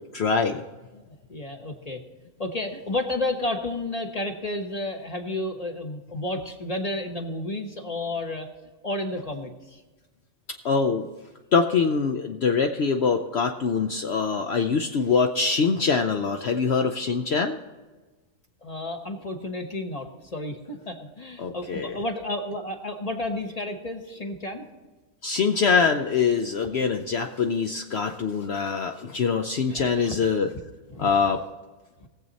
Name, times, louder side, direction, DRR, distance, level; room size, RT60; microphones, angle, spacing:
voice 1, 0.1-0.6 10.6-11.1 11.5-17.6 21.4-22.0 25.2-30.5 31.0-31.4, left 5 dB, 60° left, 5 dB, 0.9 m, -24 dB
voice 2, 1.1-2.0 2.4-8.5 8.8-9.8 18.6-24.7 29.7-30.3 30.9-31.2 32.0-32.1, left 2 dB, 30° left, 3 dB, 1.2 m, -31 dB
20.0 x 7.6 x 4.1 m, 1.3 s
omnidirectional pair, 1.4 m